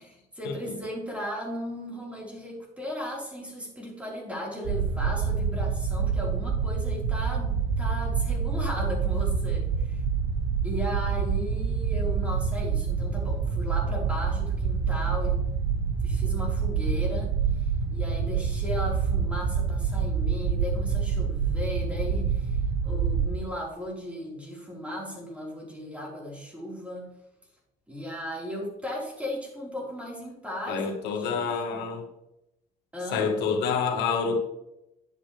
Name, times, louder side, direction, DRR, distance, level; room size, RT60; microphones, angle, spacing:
voice 1, 0.0-10.0 10.6-15.4 16.0-17.3 17.9-22.6 22.8-27.1 27.9-31.8 32.9-33.3, equal, 5° right, -3 dB, 4.2 m, -36 dB
sound 1, 4.6-23.4, right 6 dB, 90° right, 1.1 m, -27 dB
voice 2, 30.7-32.0 33.1-34.4, left 5 dB, 90° left, 4 dB, 1.6 m, -27 dB
10.0 x 8.7 x 3.3 m, 0.87 s
cardioid pair, 110°, 17 cm